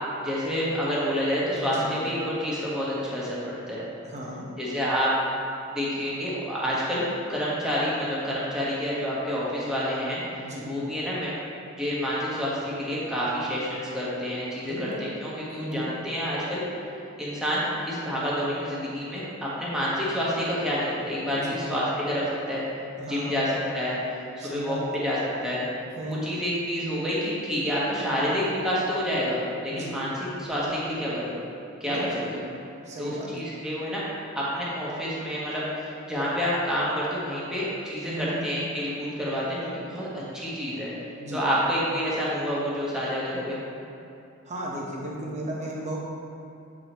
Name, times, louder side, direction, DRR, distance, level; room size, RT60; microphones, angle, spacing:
voice 1, 0.2-3.4 3.7-3.8 4.6-5.1 5.7-11.3 11.7-16.6 17.2-22.6 23.1-24.0 24.4-24.8 25.0-25.2 25.4-25.7 26.2-30.1 30.4-31.4 31.8-32.0 33.0-34.0 34.3-40.9 41.3-43.6, equal, 5° right, -8 dB, 1.3 m, -28 dB
voice 2, 4.0-4.5 10.4-10.6 14.6-15.1 15.6-15.8 21.3-21.5 23.0-23.3 24.4-24.8 26.0-26.2 29.7-29.9 31.9-32.3 32.8-33.3 38.1-38.4 41.2-41.4 44.5-46.0, right 1 dB, 35° right, -3 dB, 1.0 m, -35 dB
8.1 x 4.9 x 3.0 m, 2.8 s
head